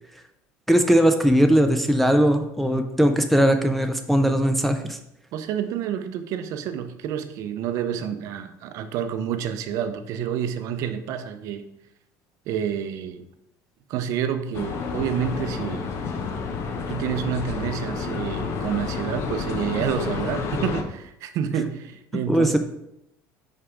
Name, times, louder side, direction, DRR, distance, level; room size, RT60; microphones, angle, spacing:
voice 1, 0.7-5.0 22.3-22.6, equal, ahead, 4 dB, 0.3 m, -19 dB
voice 2, 5.3-11.7 12.5-13.3 13.9-15.9 16.9-22.6, right 9 dB, 50° right, 9 dB, 0.6 m, -29 dB
sound 1, 14.5-20.8, left 5 dB, 40° left, 0.7 m, -30 dB
5.5 x 4.9 x 4.8 m, 0.83 s
cardioid pair, 175°, 7 cm